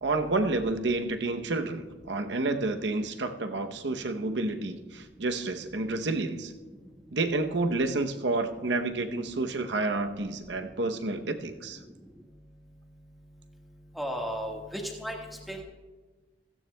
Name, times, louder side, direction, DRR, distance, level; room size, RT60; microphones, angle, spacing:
voice 1, 0.0-6.5 7.1-11.8, right 2 dB, 75° right, 7 dB, 0.8 m, -29 dB
voice 2, 14.0-15.1 15.5-15.6, equal, ahead, -1 dB, 1.5 m, -34 dB
16.0 x 15.0 x 2.2 m, 1.3 s
head